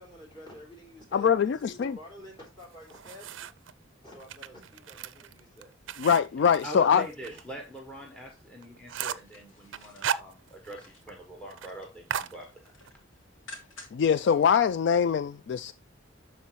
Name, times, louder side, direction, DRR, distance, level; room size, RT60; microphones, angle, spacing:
voice 1, 0.0-3.3 4.0-5.9, left 1 dB, 25° left, 3.3 m, -49 dB
voice 2, 1.1-2.0 6.0-7.0 13.9-15.7, left 7 dB, 60° left, 0.3 m, -23 dB
sound 1, 2.6-3.7 4.2-7.4 7.8-7.9 8.3-8.4 8.6-9.3 9.7-10.8 11.1-11.2 11.5-11.7 12.1-12.9, right 8 dB, 70° right, 0.4 m, -36 dB
voice 3, 6.6-12.7, right 1 dB, 5° left, 1.1 m, -43 dB
sound 2, 9.1-11.1 11.5-12.0 12.3-14.1 14.5-14.6, left 2 dB, 85° left, 2.4 m, -51 dB
12.0 x 4.2 x 3.1 m
head